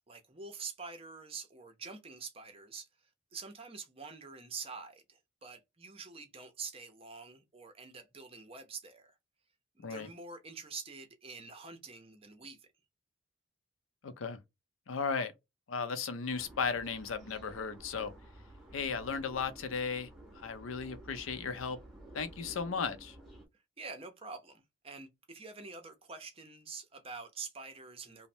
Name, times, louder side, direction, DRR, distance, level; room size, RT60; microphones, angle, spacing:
voice 1, 0.1-2.9 3.3-9.2 9.7-12.7 23.8-28.3, right 5 dB, 30° right, 0.6 m, -46 dB
voice 2, 14.0-14.4 14.9-15.3 15.7-18.1 18.7-20.1 20.4-21.8 22.1-23.2, left 5 dB, 85° left, 0.6 m, -35 dB
sound 1, 16.3-23.5, right 1 dB, ahead, 0.8 m, -53 dB
3.1 x 2.0 x 2.6 m
head